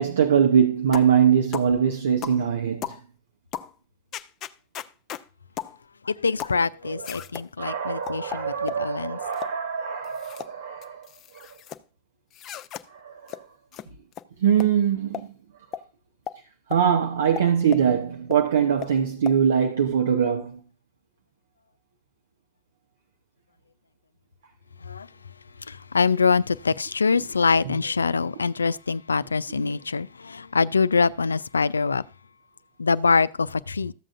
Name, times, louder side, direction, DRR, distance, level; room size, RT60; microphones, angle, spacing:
voice 1, 0.0-2.9 6.8-7.2 7.6-11.1 11.3-11.5 12.9-13.5 14.4-15.3 16.7-20.6 29.6-29.7, right 8 dB, 70° right, 0.9 m, -22 dB
sound 1, 0.9-1.2 1.5-1.7 2.2-2.4 2.8-3.0 3.5-3.7 4.1-5.2 5.6-5.8 6.4-6.6 7.0-7.5 8.1-8.8 9.3-9.6 10.0-10.5 10.8-11.8 12.3-12.8 13.3-13.4 13.7-13.9 14.1-14.2 14.6-14.7 15.1-15.3 15.7-15.8 16.3-16.4 16.7-16.8 17.4-17.9 18.3-18.4 18.8-18.9 19.3-19.4, left 10 dB, 35° left, 0.6 m, -35 dB
voice 2, 6.1-9.2 24.8-25.1 25.7-32.0 32.8-33.9, left 4 dB, 85° left, 0.4 m, -24 dB
13.5 x 7.6 x 2.5 m
figure-of-eight pair, 95°, 0 cm